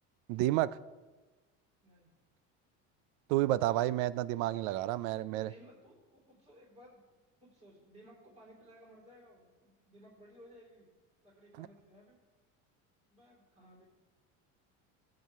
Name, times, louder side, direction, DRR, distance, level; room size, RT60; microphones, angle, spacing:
voice 1, 0.3-0.8 3.3-5.5 11.6-11.7, right 15 dB, 80° right, 17 dB, 0.6 m, -30 dB
voice 2, 5.3-10.9 11.2-12.2 13.1-13.9, equal, 20° right, -4 dB, 4.3 m, -58 dB
21.0 x 8.6 x 3.6 m, 1.2 s
cardioid pair, 170°, 33 cm